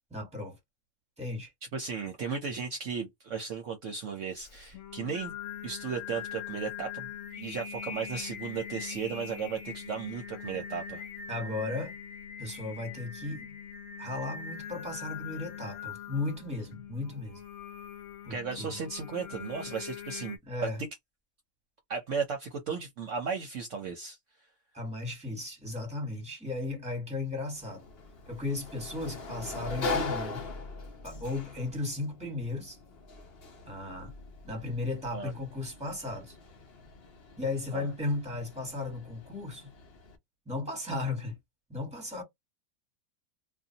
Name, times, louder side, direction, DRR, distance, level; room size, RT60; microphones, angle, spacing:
voice 1, 0.1-0.6 1.2-1.5 11.3-11.9 12.4-13.5 14.0-17.4 18.2-18.7 20.5-20.8 24.7-27.8 28.3-30.4 31.0-32.8 33.7-34.1 34.4-36.4 37.4-39.7 40.5-41.4 41.7-42.2, left 2 dB, 5° right, 1.4 m, -35 dB
voice 2, 1.7-5.3 5.6-11.0 18.3-20.4 21.9-24.2 35.1-35.3 37.7-37.8, right 6 dB, 60° right, 0.9 m, -35 dB
Singing, 4.4-20.4, left 7 dB, 75° left, 1.2 m, -42 dB
Sliding door, 27.5-40.2, left 3 dB, 50° left, 0.8 m, -41 dB
2.5 x 2.5 x 2.7 m
omnidirectional pair, 1.6 m